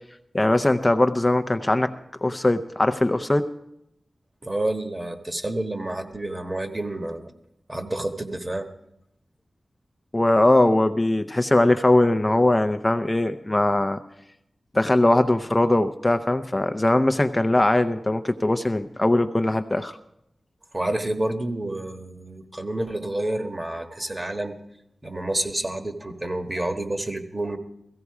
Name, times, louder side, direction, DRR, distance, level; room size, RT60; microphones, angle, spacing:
voice 1, 0.3-1.9 2.2-3.5 10.1-14.0 14.7-19.9, left 1 dB, 20° left, 7 dB, 0.6 m, -20 dB
voice 2, 4.4-7.3 7.7-8.7 20.7-24.6 25.0-27.6, right 1 dB, 30° right, 6 dB, 1.4 m, -29 dB
16.0 x 15.5 x 4.8 m, 0.81 s
wide cardioid pair, 75°, 0 cm